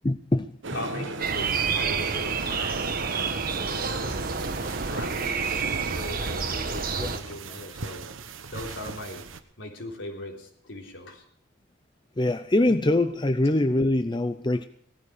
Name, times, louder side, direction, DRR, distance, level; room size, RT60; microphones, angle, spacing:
voice 1, 0.0-0.5 7.0-7.1 12.2-14.6, left 1 dB, 25° left, 10 dB, 0.5 m, -23 dB
sound 1, 0.6-6.0, right 3 dB, 70° right, 1.1 m, -36 dB
voice 2, 0.7-2.9 3.5-4.2 4.8-8.1 8.5-9.3 9.6-11.2, left 1 dB, 75° left, 1 dB, 3.8 m, -39 dB
sound 2, 1.2-7.2, right 5 dB, 45° right, 1.2 m, -29 dB
sound 3, 4.1-9.4, right 4 dB, 90° right, 1.2 m, -40 dB
18.0 x 14.0 x 5.0 m, 0.65 s
head